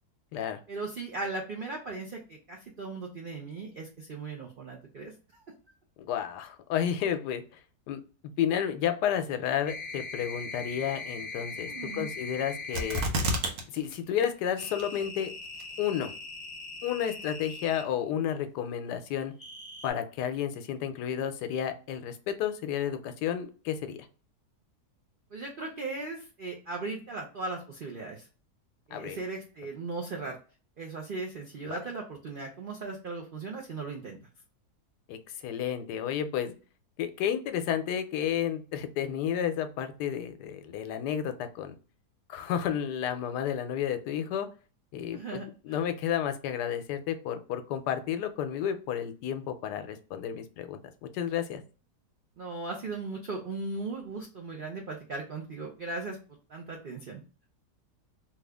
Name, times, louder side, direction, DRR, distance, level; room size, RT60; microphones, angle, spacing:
voice 1, 0.7-5.4 11.7-12.1 25.3-28.3 28.9-30.4 30.8-34.2 45.1-45.8 52.4-56.2 56.5-57.2, right 3 dB, 80° right, 0 dB, 0.4 m, -38 dB
voice 2, 6.0-7.6 7.9-8.0 8.4-13.0 13.7-15.3 15.8-16.1 16.8-19.3 19.8-24.1 28.9-29.2 31.7-31.8 35.1-36.5 37.0-41.7 42.3-44.5 44.9-51.6, left 9 dB, 80° left, 9 dB, 1.1 m, -31 dB
sound 1, 9.6-13.1 14.6-17.9 19.4-19.9, left 3 dB, 25° left, 0.6 m, -40 dB
sound 2, 12.7-13.6 13.9-14.0 14.6-15.1 15.6-15.7, right 1 dB, 65° right, 1.2 m, -29 dB
3.1 x 2.4 x 3.3 m, 0.35 s
omnidirectional pair, 1.8 m